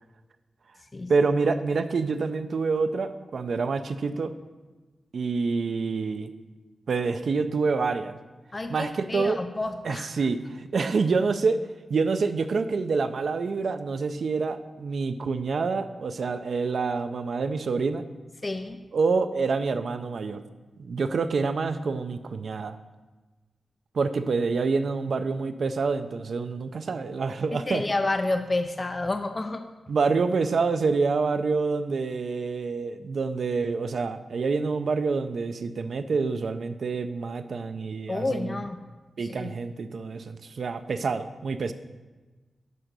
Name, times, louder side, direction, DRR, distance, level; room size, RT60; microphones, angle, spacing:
voice 1, 1.1-4.3 5.1-6.3 6.9-8.2 8.7-9.4 9.8-11.6 11.9-18.0 18.9-20.4 20.8-22.8 23.9-27.8 29.9-38.6 39.2-41.7, right 4 dB, 60° right, 10 dB, 0.5 m, -27 dB
voice 2, 8.5-10.1 18.4-18.8 27.5-29.7 38.1-38.8 39.3-39.5, left 2 dB, 25° left, 7 dB, 0.4 m, -29 dB
10.5 x 3.8 x 6.7 m, 1.2 s
wide cardioid pair, 180°, 0 cm